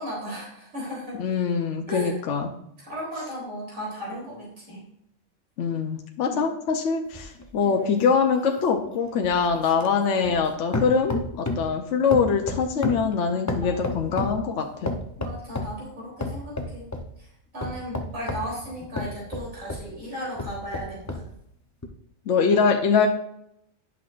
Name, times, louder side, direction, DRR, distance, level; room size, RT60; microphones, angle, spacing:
voice 1, 0.0-1.2 1.9-2.2 2.8-4.8 6.2-6.4 13.3-13.7 15.2-16.8 17.2-17.3 17.5-21.2, equal, 80° right, -6 dB, 3.7 m, -35 dB
voice 2, 1.2-2.5 5.6-14.9 22.3-23.1, left 5 dB, 65° left, 3 dB, 1.0 m, -23 dB
sound 1, 7.1-10.5 10.7-11.7 12.1-14.4 14.9-15.8 16.2-17.1 17.6-19.9 20.4-21.3 21.8-21.9, left 2 dB, 20° left, 0.6 m, -32 dB
10.5 x 6.0 x 2.5 m, 0.75 s
omnidirectional pair, 1.4 m